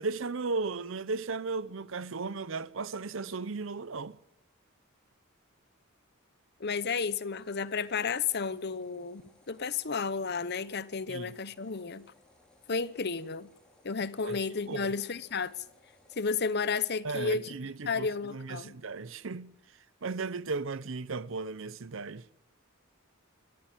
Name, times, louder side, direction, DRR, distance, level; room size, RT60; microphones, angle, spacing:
voice 1, 0.0-4.2 11.1-11.3 14.2-14.4 14.7-14.9 17.0-19.5 20.0-22.2, right 4 dB, 65° right, 0.7 m, -35 dB
voice 2, 6.6-9.2 9.5-12.1 12.7-13.5 13.8-15.5 16.2-17.6 17.9-18.8, left 5 dB, 50° left, 0.9 m, -32 dB
sound 1, 7.3-16.3, left 1 dB, 5° left, 4.0 m, -64 dB
23.5 x 13.5 x 9.0 m
head